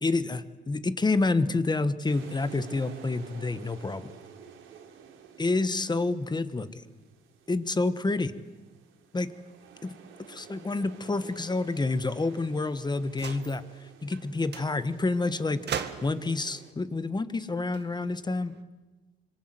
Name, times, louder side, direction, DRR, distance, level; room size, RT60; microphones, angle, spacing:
voice 1, 0.0-4.1 5.4-6.8 7.5-8.3 9.1-9.3 9.8-9.9 10.3-18.5, left 3 dB, 20° left, 13 dB, 1.4 m, -28 dB
sound 1, 2.0-16.7, right 7 dB, 85° right, 3.2 m, -51 dB
sound 2, 13.1-13.6 14.1-14.3 14.5-14.7 15.7-16.3 17.5-18.6, right 7 dB, 60° right, 1.9 m, -38 dB
26.0 x 22.5 x 7.9 m, 1.2 s
cardioid pair, 90°, 20 cm